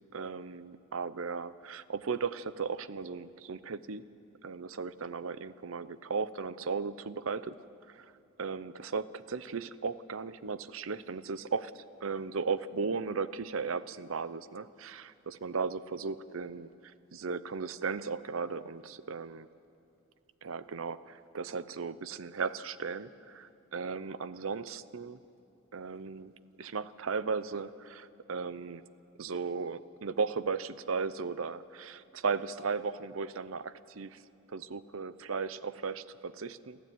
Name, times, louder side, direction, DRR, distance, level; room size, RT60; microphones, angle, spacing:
voice 1, 0.1-4.0 4.4-7.6 7.9-8.1 8.4-16.7 17.1-19.5 20.4-25.2 25.7-26.3 26.6-28.8 29.2-34.2 34.5-36.8, right 5 dB, 75° right, 15 dB, 0.7 m, -36 dB
28.0 x 12.0 x 9.2 m, 2.6 s
head